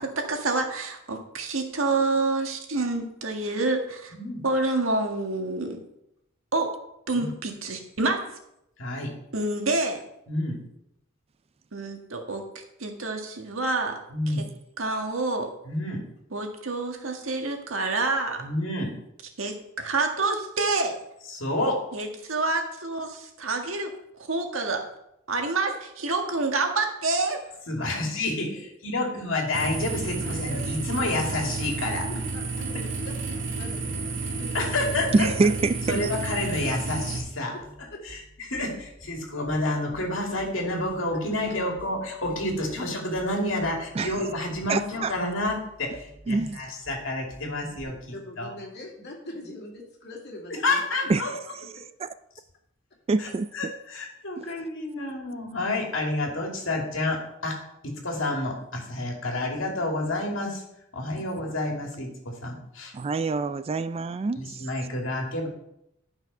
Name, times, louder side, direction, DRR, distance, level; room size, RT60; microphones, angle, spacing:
voice 1, 0.1-4.1 4.4-5.8 6.5-6.7 7.1-8.2 9.3-10.0 11.7-12.4 12.8-14.0 14.3-14.4 14.8-15.5 16.3-18.4 19.4-21.0 21.9-23.9 24.3-24.8 25.3-27.4, right 3 dB, 85° right, 3 dB, 1.7 m, -27 dB
voice 2, 4.1-4.4 7.1-7.3 8.8-9.1 10.3-10.6 14.1-14.4 15.6-16.0 18.4-18.9 21.3-21.8 27.7-28.5 28.8-32.1 34.5-35.3 35.9-37.5 38.0-38.2 38.4-48.5 50.5-51.3 53.2-53.3 53.5-57.6 57.8-60.6 60.9-62.9 64.4-65.5, left 2 dB, 70° left, 1 dB, 2.6 m, -29 dB
sound 1, 29.5-37.2, right 3 dB, 65° right, 2.3 m, -31 dB
voice 3, 30.2-30.6 32.1-33.1 33.5-34.5 37.5-37.6 37.9-38.0 48.1-51.2, left 2 dB, 55° left, -1 dB, 2.8 m, -42 dB
voice 4, 35.1-36.1 44.0-44.2 44.7-45.1 46.3-46.6 51.1-51.3 53.1-53.7 61.2-61.3 62.9-64.7, right 3 dB, 30° right, 14 dB, 0.3 m, -25 dB
sound 2, 37.6-47.8, right 1 dB, 10° right, 1.8 m, -51 dB
11.5 x 6.0 x 5.5 m, 0.81 s
head